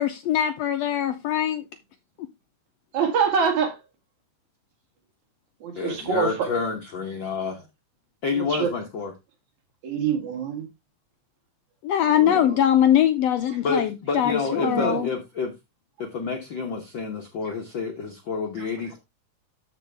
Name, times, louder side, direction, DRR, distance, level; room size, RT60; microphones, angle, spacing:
voice 1, 0.0-1.7 2.2-2.3 11.8-15.1, left 10 dB, 80° left, 1.5 m, -22 dB
voice 2, 2.9-3.8 5.6-6.5 8.3-8.7 9.8-10.7 12.1-12.6 14.5-15.0 17.4-17.6 18.6-18.7, right 6 dB, 70° right, 3.4 m, -26 dB
voice 3, 5.7-7.7 8.2-9.1 13.6-15.5 16.0-19.0, left 4 dB, 65° left, 1.2 m, -29 dB
13.0 x 4.7 x 3.3 m
omnidirectional pair, 3.5 m